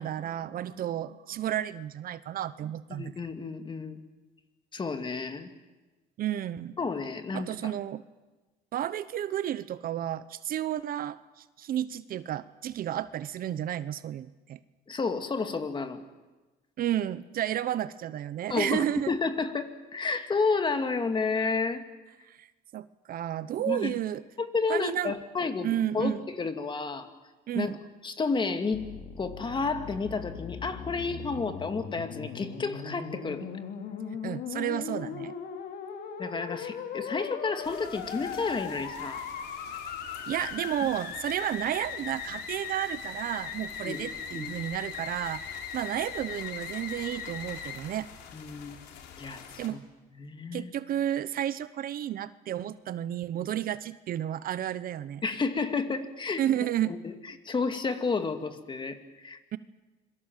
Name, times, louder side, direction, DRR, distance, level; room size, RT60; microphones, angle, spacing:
voice 1, 0.0-3.1 6.2-6.7 7.3-8.0 8.7-14.6 16.8-19.1 22.3-22.5 22.7-24.2 24.7-25.1 25.4-26.3 27.5-27.8 34.2-35.3 40.3-45.4 45.7-48.1 49.6-49.8 50.5-55.2 56.4-56.9 59.5-59.6, right 11 dB, 60° right, 15 dB, 0.9 m, -32 dB
voice 2, 2.9-4.0 4.7-5.5 6.8-7.7 14.9-16.0 18.5-21.8 23.6-23.9 24.4-27.1 27.5-27.7 28.0-28.9 29.2-33.5 36.2-39.2 40.4-40.5 40.8-40.9 43.8-44.1 44.3-44.5 48.3-48.8 49.2-49.8 50.2-50.7 55.2-56.4 56.9-57.1 57.4-59.4, left 4 dB, 30° left, 7 dB, 2.4 m, -31 dB
Musical instrument, 28.7-47.8, left 6 dB, 65° left, 3.2 m, -39 dB
Rain sound effect - Gentle rain on window, 37.6-49.7, left 8 dB, 85° left, 3.5 m, -49 dB
26.5 x 23.0 x 7.5 m, 1.2 s
cardioid pair, 110°, 17 cm